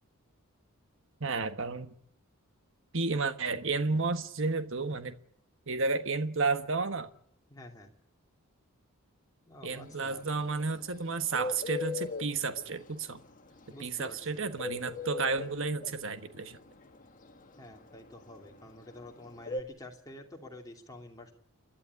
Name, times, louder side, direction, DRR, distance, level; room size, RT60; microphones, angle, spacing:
voice 1, 1.2-1.9 2.9-5.1 5.7-7.1 9.6-13.2 13.8-16.6, right 4 dB, 60° right, 1.3 m, -32 dB
voice 2, 7.5-7.9 9.5-10.2 13.7-14.4 17.6-21.3, left 1 dB, 15° left, 2.7 m, -49 dB
Bird, 9.7-19.6, left 4 dB, 35° left, 1.5 m, -38 dB
29.0 x 12.0 x 9.6 m
head